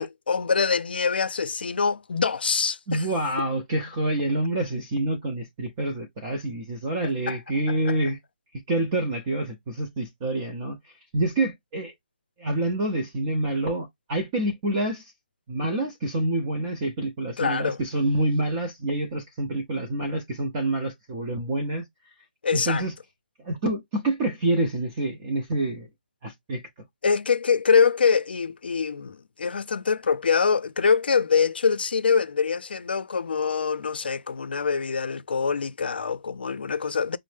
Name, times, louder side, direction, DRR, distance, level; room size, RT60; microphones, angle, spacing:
voice 1, 0.0-3.1 7.3-7.4 7.9-8.0 17.4-17.8 22.4-22.8 27.0-37.2, left 5 dB, 65° left, 0.5 m, -24 dB
voice 2, 2.9-8.2 8.7-10.8 11.1-11.9 12.4-15.1 15.5-21.8 22.5-22.9 23.4-25.9 26.2-26.6, right 1 dB, 20° right, 0.6 m, -27 dB
5.3 x 2.0 x 3.2 m
hypercardioid pair, 175°, 6 cm